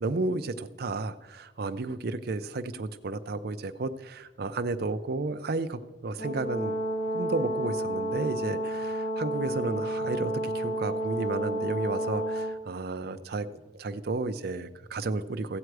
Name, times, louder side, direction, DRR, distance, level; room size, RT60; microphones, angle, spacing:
voice 1, 0.0-6.8 7.1-15.6, right 3 dB, 55° right, 9 dB, 0.5 m, -32 dB
Brass instrument, 6.2-12.6, right 1 dB, 50° left, 1.3 m, -31 dB
15.5 x 7.8 x 4.7 m, 1.1 s
head